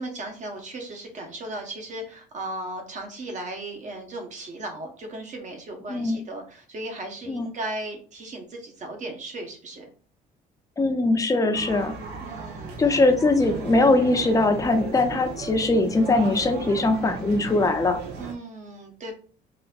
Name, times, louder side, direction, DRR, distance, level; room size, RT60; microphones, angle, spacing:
voice 1, 0.0-9.9 12.2-12.7 18.2-19.1, right 2 dB, 45° right, 3 dB, 1.1 m, -36 dB
voice 2, 10.8-11.9 12.8-18.0, left 2 dB, 20° left, 6 dB, 0.6 m, -21 dB
sound 1, 11.5-18.3, right 5 dB, 85° right, 0.8 m, -36 dB
4.0 x 2.7 x 2.4 m, 0.41 s
cardioid pair, 110°, 17 cm